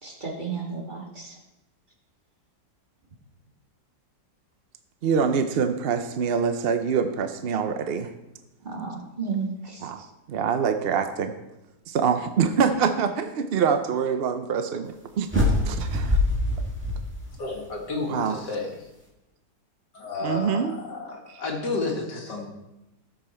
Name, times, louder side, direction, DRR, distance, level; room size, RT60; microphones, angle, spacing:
voice 1, 0.0-1.4 8.6-9.9, right 5 dB, 30° right, -1 dB, 1.8 m, -33 dB
voice 2, 5.0-8.1 9.8-11.3 11.9-16.2 18.1-18.4 20.2-20.7, right 6 dB, 65° right, 8 dB, 0.5 m, -25 dB
sound 1, 15.3-17.7, left 2 dB, 5° right, 2.0 m, -24 dB
voice 3, 17.4-18.9 19.9-22.5, left 3 dB, 85° left, 0 dB, 2.5 m, -31 dB
13.0 x 7.1 x 4.4 m, 0.96 s
omnidirectional pair, 1.8 m